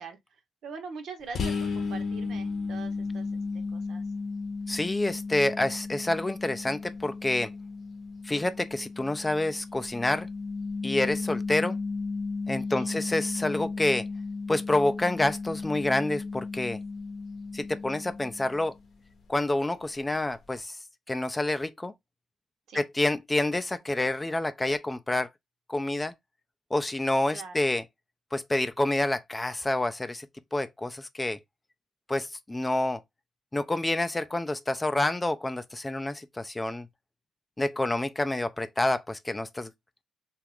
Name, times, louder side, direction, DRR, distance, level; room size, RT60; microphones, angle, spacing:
voice 1, 0.0-4.0 12.7-13.0 22.7-22.8 27.3-27.7, right 5 dB, 70° right, 0.8 m, -43 dB
sound 1, 1.3-18.8, left 4 dB, 55° left, 0.7 m, -35 dB
voice 2, 4.7-7.5 8.2-10.3 10.8-11.8 12.5-14.1 14.5-16.8 17.5-18.7 19.3-20.8 21.1-21.9 22.7-25.3 25.7-26.1 26.7-27.8 28.3-30.3 30.5-31.4 32.1-33.0 33.5-36.9 37.6-39.7, left 2 dB, 15° left, 0.3 m, -28 dB
2.9 x 2.4 x 3.4 m
cardioid pair, 90°, 0 cm